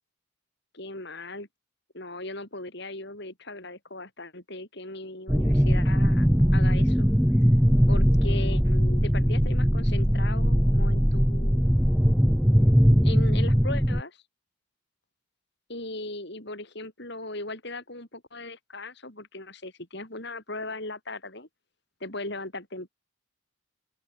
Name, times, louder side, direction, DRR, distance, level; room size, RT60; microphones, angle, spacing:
voice 1, 0.7-1.5 1.9-6.3 6.5-7.2 7.9-11.6 13.0-14.2 15.7-21.5 22.0-22.9, left 2 dB, 55° left, 5.5 m, -38 dB
sound 1, 5.3-14.0, equal, ahead, 0.8 m, -21 dB
open air
head